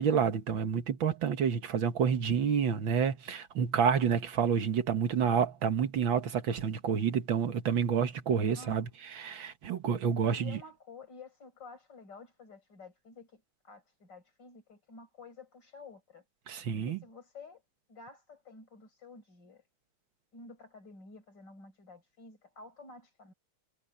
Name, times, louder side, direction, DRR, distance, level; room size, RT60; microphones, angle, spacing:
voice 1, 0.0-10.6 16.5-17.0, right 7 dB, 70° right, 2.2 m, -29 dB
voice 2, 8.4-8.9 10.2-16.2 16.8-17.6 17.9-19.6 20.3-23.3, left 3 dB, 55° left, 6.2 m, -51 dB
omnidirectional pair, 2.3 m